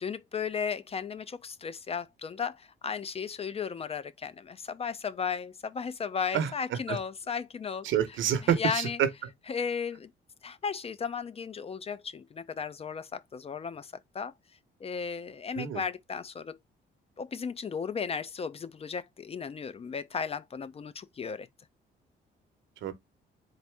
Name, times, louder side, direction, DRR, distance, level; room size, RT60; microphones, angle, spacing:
voice 1, 0.0-7.9 8.4-9.0 9.5-10.1 10.4-14.3 14.8-16.6 17.2-21.5, left 6 dB, 30° left, 0.4 m, -35 dB
voice 2, 7.8-9.1 15.6-15.8 22.8-22.9, right 9 dB, 75° right, 0.8 m, -27 dB
4.0 x 2.6 x 3.3 m
cardioid pair, 90°, 20 cm